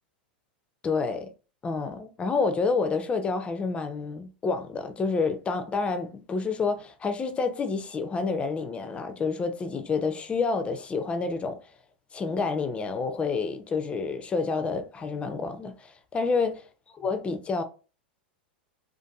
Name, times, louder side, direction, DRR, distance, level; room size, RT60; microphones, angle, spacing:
voice 1, 0.8-1.3 1.6-11.6 12.1-16.6 16.9-17.6, left 4 dB, 20° left, 0.5 m, -28 dB
2.6 x 2.5 x 2.3 m
hypercardioid pair, 95°, 5 cm